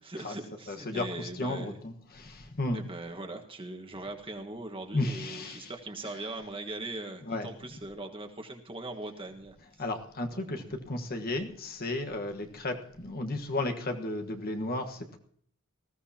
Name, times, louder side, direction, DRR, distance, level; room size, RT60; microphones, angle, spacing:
voice 1, 0.0-1.8 2.7-9.5 10.3-10.4, right 2 dB, 25° right, 1.5 m, -40 dB
voice 2, 0.7-2.9 4.9-5.7 6.1-6.2 7.2-7.5 9.8-15.2, left 2 dB, 45° left, 1.4 m, -34 dB
20.0 x 15.0 x 2.9 m
head